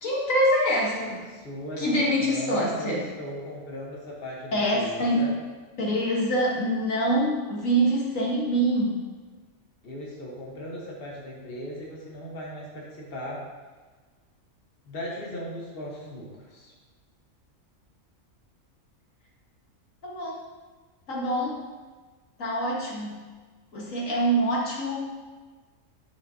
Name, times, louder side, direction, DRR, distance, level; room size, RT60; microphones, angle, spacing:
voice 1, 0.0-1.2 1.8-3.0 4.5-5.3 5.8-9.0 20.0-20.4 21.1-21.6 22.4-23.2 23.7-25.0, right 1 dB, 75° left, -4 dB, 1.8 m, -25 dB
voice 2, 1.3-5.3 9.8-13.4 14.9-16.7, equal, 45° left, -3 dB, 1.5 m, -38 dB
9.6 x 6.5 x 2.8 m, 1.4 s
omnidirectional pair, 1.4 m